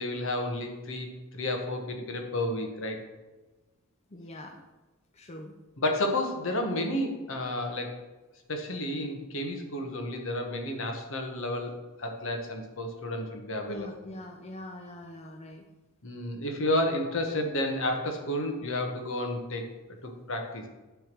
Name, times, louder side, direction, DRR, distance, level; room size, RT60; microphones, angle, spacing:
voice 1, 0.0-3.0 5.8-8.0 8.5-13.9 16.0-20.7, left 1 dB, 65° left, 3 dB, 1.2 m, -31 dB
voice 2, 4.1-4.6 5.1-5.5 13.7-15.7, left 1 dB, 30° left, 3 dB, 0.5 m, -42 dB
9.2 x 3.5 x 6.0 m, 1.2 s
head